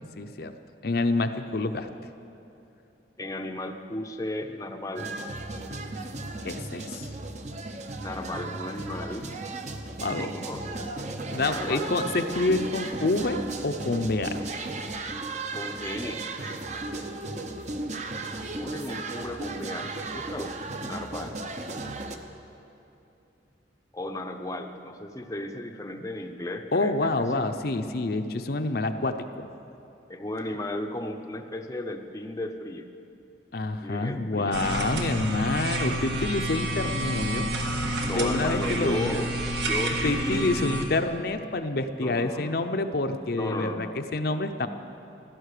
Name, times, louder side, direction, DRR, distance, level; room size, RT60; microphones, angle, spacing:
voice 1, 0.2-0.5 0.8-1.9 6.4-7.1 10.0-10.3 11.3-14.4 26.7-29.5 33.5-37.5 38.1-39.3 40.0-44.7, left 2 dB, 55° left, 7 dB, 0.6 m, -27 dB
voice 2, 3.2-5.1 8.0-9.3 10.2-10.8 11.5-11.9 15.5-16.2 18.6-21.4 23.9-27.4 30.1-32.9 33.8-34.6 38.0-39.3 39.5-40.8 42.0-42.7 43.3-44.1, left 1 dB, 15° left, 4 dB, 0.6 m, -35 dB
sound 1, 5.0-22.2, right 2 dB, 40° right, 0.8 m, -35 dB
sound 2, 34.5-40.9, right 1 dB, 70° right, 1.7 m, -29 dB
16.0 x 12.5 x 6.7 m, 2.9 s
head